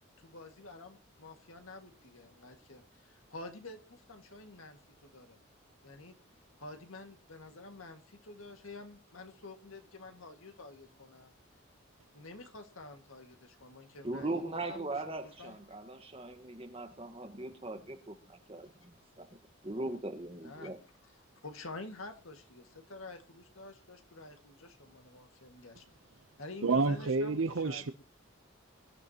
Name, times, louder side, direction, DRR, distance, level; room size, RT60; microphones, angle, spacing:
voice 1, 0.2-5.4 5.8-6.1 6.6-11.3 12.1-14.4 14.7-15.6 20.4-20.7 21.4-25.9 26.4-27.8, left 2 dB, 90° left, 2.0 m, -49 dB
voice 2, 14.0-19.3 19.6-20.8, right 2 dB, 30° right, 1.5 m, -40 dB
voice 3, 26.6-27.9, right 3 dB, 75° right, 0.8 m, -29 dB
23.5 x 12.5 x 3.0 m
head